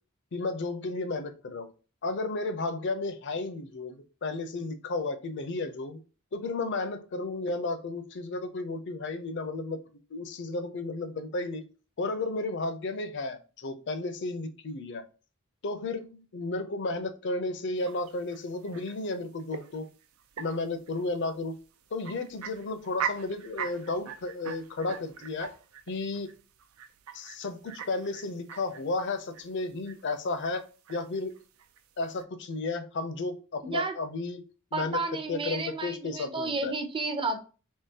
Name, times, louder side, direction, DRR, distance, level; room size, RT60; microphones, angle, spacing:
voice 1, 0.3-1.7 2.0-6.0 6.3-9.8 10.1-11.6 12.0-15.1 15.6-19.9 20.4-21.6 21.9-25.5 25.9-26.3 27.1-30.6 30.9-31.4 32.0-34.4 34.7-35.0 35.3-36.7, left 3 dB, 60° left, 10 dB, 0.5 m, -33 dB
sound 1, 17.8-32.2, right 7 dB, 80° right, 0.4 m, -42 dB
voice 2, 33.6-33.9 34.7-37.4, right 3 dB, 25° right, 7 dB, 0.6 m, -32 dB
3.7 x 3.1 x 2.7 m, 0.35 s
head